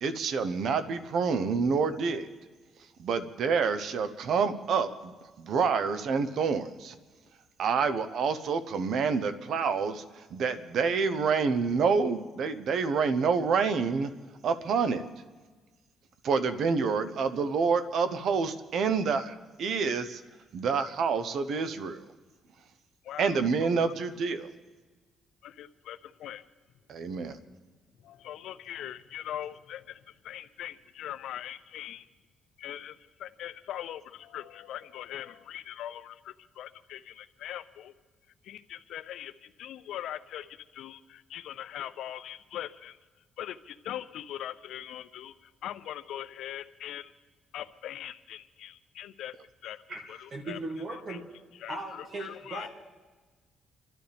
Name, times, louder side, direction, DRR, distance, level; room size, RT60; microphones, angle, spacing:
voice 1, 0.0-2.3 3.0-6.9 7.6-14.1 14.4-15.1 16.2-20.2 20.5-22.0 23.2-24.5 26.9-27.4, right 5 dB, 70° right, 11 dB, 1.0 m, -28 dB
voice 2, 23.0-23.8 25.4-26.4 28.0-32.1 32.6-37.9 38.4-43.0 43.4-47.1 47.5-49.3 49.6-49.8 50.1-50.6 51.1-51.2 51.6-52.7, left 11 dB, 80° left, 13 dB, 0.6 m, -41 dB
voice 3, 50.3-51.2 51.7-52.7, right 2 dB, 50° right, 0 dB, 2.3 m, -37 dB
28.5 x 12.0 x 3.5 m, 1.3 s
cardioid pair, 90°, 0 cm